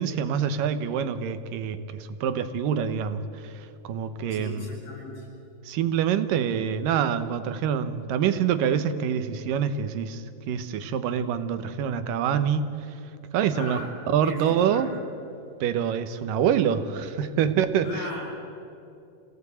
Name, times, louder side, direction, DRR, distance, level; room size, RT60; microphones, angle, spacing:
voice 1, 0.0-4.7 5.7-12.8 13.3-13.8 14.1-14.9 15.6-18.1, right 8 dB, 85° right, 11 dB, 2.7 m, -26 dB
voice 2, 4.3-5.3 13.5-13.9 14.2-14.9 17.8-18.2, left 2 dB, 60° left, -2 dB, 9.6 m, -37 dB
27.5 x 17.5 x 8.5 m, 2.7 s
omnidirectional pair, 3.8 m